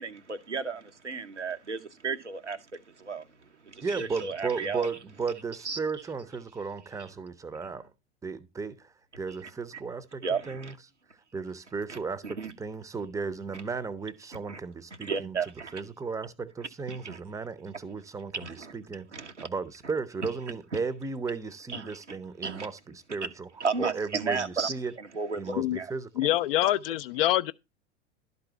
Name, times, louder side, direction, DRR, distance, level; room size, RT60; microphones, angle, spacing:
voice 1, 0.0-2.6 3.0-3.2 3.6-4.9 5.6-5.8 10.2-10.7 11.9-12.0 12.2-12.5 14.5-14.6 15.0-15.7 16.9-17.2 18.4-18.7 19.1-19.5 21.7-22.2 22.4-22.7 23.6-25.9 26.2-26.3, right 5 dB, 85° right, 1.0 m, -33 dB
voice 2, 3.8-7.9 8.2-10.8 11.3-19.1 19.4-23.5 23.8-24.9 25.4-26.1, right 4 dB, 10° right, 0.7 m, -35 dB
voice 3, 26.2-27.5, left 15 dB, 50° left, 0.6 m, -25 dB
12.0 x 4.1 x 5.8 m
figure-of-eight pair, 85°, 35 cm